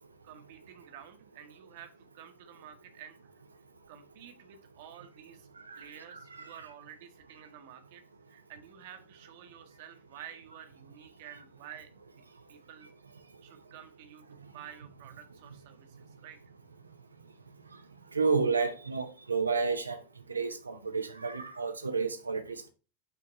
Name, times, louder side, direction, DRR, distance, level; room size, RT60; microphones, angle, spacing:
voice 1, 0.2-3.3 3.9-5.5 5.8-8.0 8.3-11.9 12.2-12.9 13.4-16.4, right 9 dB, 50° right, 1.1 m, -51 dB
voice 2, 5.7-6.5 18.1-20.0 20.3-22.7, right 4 dB, 75° right, 0.7 m, -31 dB
5.7 x 3.5 x 5.1 m
figure-of-eight pair, 90°, 0 cm